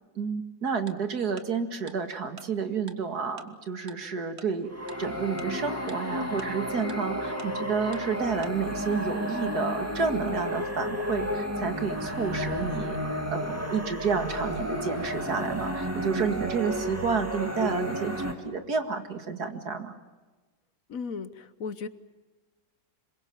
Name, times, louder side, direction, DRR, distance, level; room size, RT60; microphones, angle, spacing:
voice 1, 0.2-4.7 5.0-19.9, right 5 dB, 70° right, 7 dB, 2.5 m, -30 dB
Tick-tock, 0.9-1.0 1.4-1.5 1.9-2.0 2.4-2.5 2.9-3.0 3.4-3.5 3.9-4.0 4.4-4.5 4.9-5.0 5.4-5.5 5.9-6.0 6.4-6.5 6.9-7.0 7.4-7.5 7.9-8.0 8.4-8.5, right 5 dB, 40° right, 1.5 m, -45 dB
sound 1, 4.7-18.3, equal, 10° right, 2.8 m, -32 dB
voice 2, 20.9-21.9, left 5 dB, 60° left, 14 dB, 1.3 m, -35 dB
26.5 x 23.0 x 7.2 m, 1.3 s
omnidirectional pair, 1.7 m